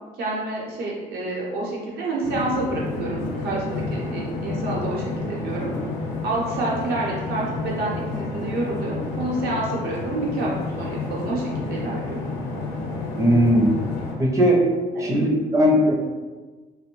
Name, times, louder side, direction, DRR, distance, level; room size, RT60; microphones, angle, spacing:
voice 1, 0.2-5.7 6.2-12.2 14.9-15.2, right 2 dB, 70° right, -4 dB, 0.9 m, -28 dB
sound 1, 2.2-14.1, left 3 dB, 85° left, 0.6 m, -30 dB
voice 2, 13.1-13.8 14.2-14.7 15.0-15.9, equal, 20° right, -2 dB, 0.5 m, -18 dB
2.5 x 2.1 x 2.9 m, 1.3 s
cardioid pair, 110°, 17 cm